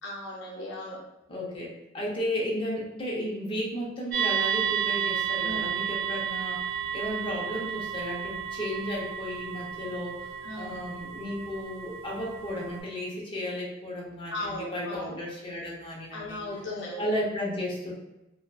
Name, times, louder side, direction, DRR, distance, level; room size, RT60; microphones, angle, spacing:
voice 1, 0.0-1.0 5.4-5.7 10.4-10.7 14.3-15.2 16.1-17.1, left 1 dB, 70° left, -3 dB, 0.6 m, -36 dB
voice 2, 1.3-10.3 10.6-16.4 17.0-17.9, left 1 dB, 30° left, -3 dB, 0.6 m, -34 dB
sound 1, 4.1-12.8, right 8 dB, 50° right, 0.6 m, -32 dB
2.7 x 2.3 x 2.2 m, 0.95 s
head